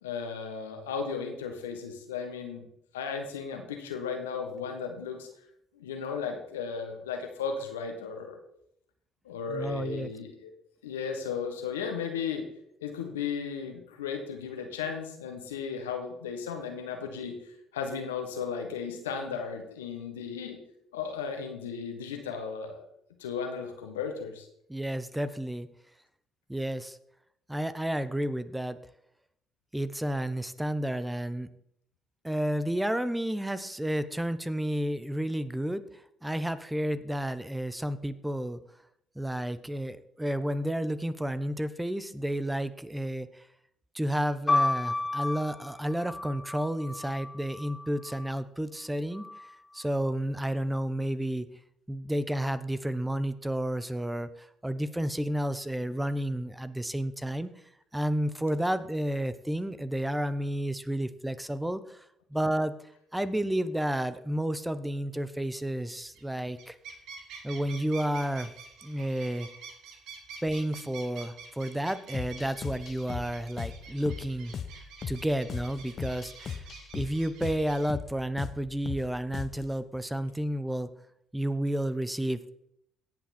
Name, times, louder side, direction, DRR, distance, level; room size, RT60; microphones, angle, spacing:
voice 1, 0.0-2.7 2.9-5.3 5.7-8.4 9.2-10.5 10.8-12.4 12.8-17.4 17.7-20.6 20.9-22.8 23.2-24.5, left 6 dB, 90° left, 4 dB, 1.4 m, -35 dB
voice 2, 9.5-10.1 24.7-25.7 26.5-27.0 27.5-28.8 29.7-31.5 32.2-38.6 39.2-43.5 43.9-49.2 49.7-51.5 51.9-57.5 57.9-62.1 62.3-62.7 63.1-66.8 67.4-68.5 68.8-69.5 70.4-74.5 75.1-76.6 76.9-80.9 81.3-82.4, right 1 dB, 10° right, 14 dB, 0.9 m, -31 dB
sound 1, 44.5-48.3 49.1-49.9, left 2 dB, 25° left, 2.7 m, -32 dB
sound 2, 66.1-66.3 66.5-77.9, right 5 dB, 70° right, 1.6 m, -48 dB
sound 3, 72.1-79.7, left 7 dB, 50° left, 1.0 m, -39 dB
17.5 x 5.9 x 4.3 m, 0.74 s
hypercardioid pair, 55°, 0 cm